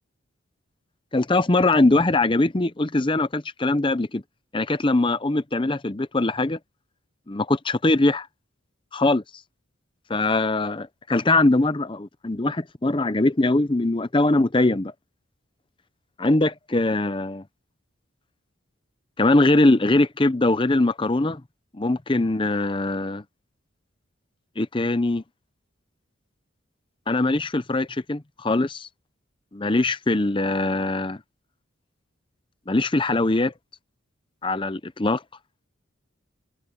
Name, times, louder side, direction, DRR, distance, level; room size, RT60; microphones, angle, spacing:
voice 1, 1.1-4.2 4.5-6.6 7.3-8.3 8.9-9.2 10.1-14.9 16.2-17.4 19.2-21.4 21.7-23.2 24.6-25.2 27.1-28.9 29.5-31.2 32.7-33.5 34.4-35.2, left 2 dB, 25° left, 0.7 m, -22 dB
head